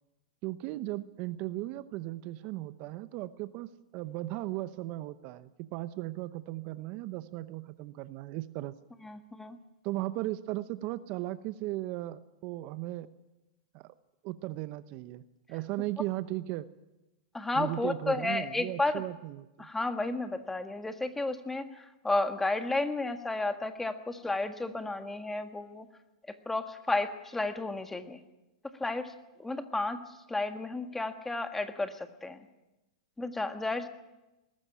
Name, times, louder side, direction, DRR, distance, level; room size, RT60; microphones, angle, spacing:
voice 1, 0.4-8.7 9.8-13.1 13.7-13.9 14.2-15.2 15.5-16.7 17.5-19.7, right 17 dB, 45° right, 14 dB, 0.9 m, -37 dB
voice 2, 9.0-9.6 17.3-19.0 19.6-25.9 26.3-28.2 28.8-32.5 33.2-33.9, left 2 dB, 10° left, 8 dB, 1.6 m, -32 dB
21.0 x 13.0 x 10.0 m, 1.0 s
hypercardioid pair, 115°, 3 cm